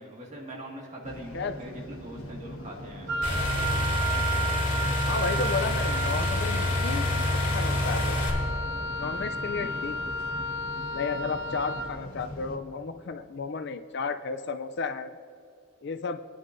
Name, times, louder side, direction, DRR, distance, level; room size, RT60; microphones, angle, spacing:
voice 1, 0.0-3.1 9.6-9.9, right 1 dB, 35° right, -2 dB, 1.9 m, -42 dB
sound 1, 1.0-12.6, equal, 85° left, 1.3 m, -41 dB
Wind instrument woodwind instrument, 3.1-11.9, right 1 dB, 60° right, 0.8 m, -32 dB
sound 2, 3.2-8.3, left 1 dB, 40° left, 2.4 m, -28 dB
voice 2, 5.1-7.1 7.5-8.2 9.0-10.0 10.9-15.1 15.8-16.2, left 5 dB, 55° left, 10 dB, 0.4 m, -33 dB
22.0 x 9.9 x 2.6 m, 2.4 s
head